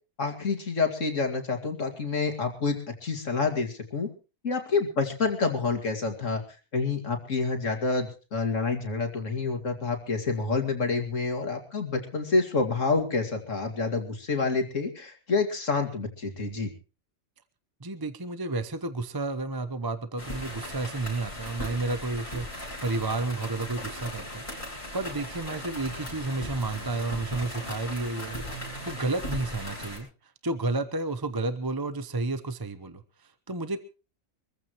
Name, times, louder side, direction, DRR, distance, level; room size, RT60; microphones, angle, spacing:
voice 1, 0.2-4.1 4.4-6.4 6.7-16.7, left 4 dB, 60° left, 2.7 m, -28 dB
voice 2, 17.8-33.8, right 3 dB, 20° right, 0.8 m, -32 dB
sound 1, 20.2-30.0, left 1 dB, 20° left, 8.2 m, -38 dB
24.5 x 14.5 x 3.1 m
omnidirectional pair, 1.5 m